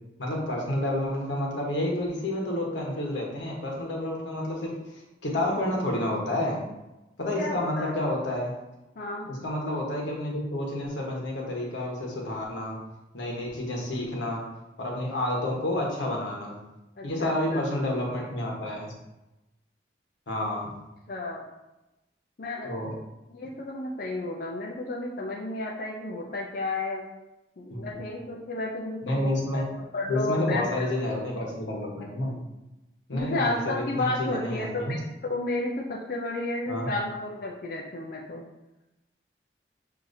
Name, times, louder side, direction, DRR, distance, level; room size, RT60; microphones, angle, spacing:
voice 1, 0.2-6.6 7.2-8.5 9.2-12.8 13.1-14.4 14.8-16.6 17.0-18.9 20.3-20.7 22.6-23.0 27.7-28.0 29.0-29.6 30.1-32.3 33.1-35.0 36.7-36.9, left 1 dB, 85° left, -2 dB, 1.2 m, -30 dB
voice 2, 7.4-7.9 9.0-9.3 17.0-17.6 21.1-21.4 22.4-22.7 23.3-27.0 27.6-29.7 29.9-30.9 33.1-38.4, left 2 dB, 50° left, -3 dB, 0.5 m, -32 dB
6.3 x 2.8 x 2.7 m, 0.99 s
head